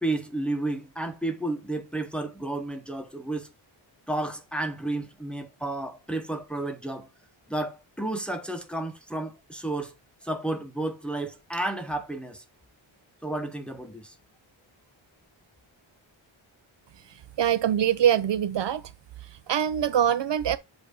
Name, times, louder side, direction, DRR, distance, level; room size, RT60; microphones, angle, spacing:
voice 1, 0.0-3.5 4.1-7.1 7.5-9.9 10.2-12.4 13.2-14.1, right 2 dB, ahead, 0.8 m, -32 dB
voice 2, 17.0-18.9 19.2-20.6, right 9 dB, 60° right, 0.6 m, -24 dB
8.1 x 2.7 x 4.8 m
wide cardioid pair, 170°, 49 cm